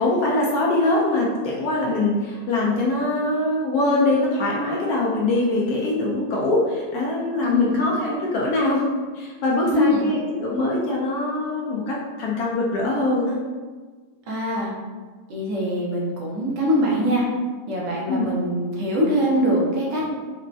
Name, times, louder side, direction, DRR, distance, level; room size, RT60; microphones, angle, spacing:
voice 1, 0.0-13.4 18.1-18.3, left 2 dB, 70° left, -3 dB, 1.0 m, -23 dB
voice 2, 7.4-7.7 9.6-10.1 14.3-14.7 15.3-17.2 17.7-20.1, equal, 75° right, -4 dB, 1.4 m, -23 dB
4.4 x 2.1 x 2.6 m, 1.4 s
omnidirectional pair, 2.0 m